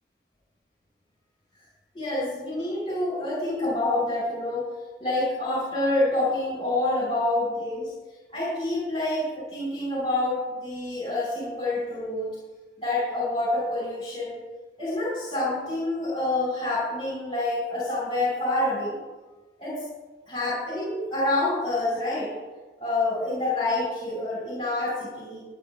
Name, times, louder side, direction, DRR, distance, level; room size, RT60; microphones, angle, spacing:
voice 1, 1.9-4.7 5.0-7.9 8.3-12.3 12.8-14.3 14.8-19.0 19.6-19.9 20.3-22.3 22.8-25.4, left 2 dB, 30° left, -7 dB, 5.4 m, -27 dB
25.0 x 9.1 x 3.6 m, 1.3 s
head